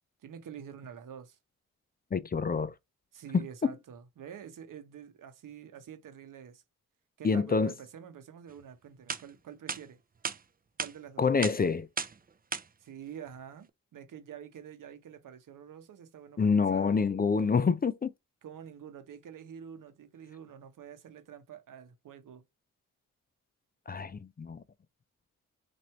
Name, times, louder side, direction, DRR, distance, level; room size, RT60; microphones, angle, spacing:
voice 1, 0.2-1.4 3.1-6.6 7.2-10.0 10.8-11.2 12.8-16.9 18.4-22.4, right 8 dB, 70° right, 0.9 m, -47 dB
voice 2, 2.1-2.7 3.3-3.5 7.2-7.7 11.2-11.9 16.4-18.1 23.9-24.6, left 5 dB, 30° left, 0.5 m, -27 dB
OM-FR-teacher's-stick, 8.6-8.7 9.1-9.2 9.7-9.8 10.2-10.4 10.8-10.9 11.4-11.6 12.0-12.2 12.5-12.6, right 5 dB, 25° right, 0.5 m, -34 dB
3.0 x 2.6 x 4.4 m
supercardioid pair, 45°, 33 cm